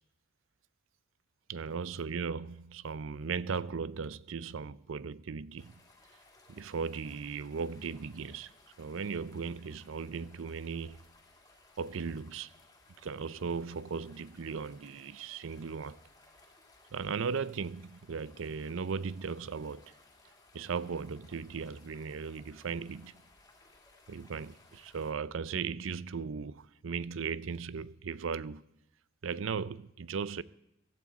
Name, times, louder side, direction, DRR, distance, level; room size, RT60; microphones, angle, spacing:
voice 1, 1.5-5.7 6.5-8.5 8.8-11.0 11.8-12.5 13.0-16.0 16.9-19.9 20.5-23.1 24.1-28.6 29.2-30.4, right 5 dB, 70° right, 0.5 m, -37 dB
sound 1, 5.6-25.1, left 2 dB, 20° left, 2.1 m, -61 dB
16.5 x 14.0 x 4.1 m
head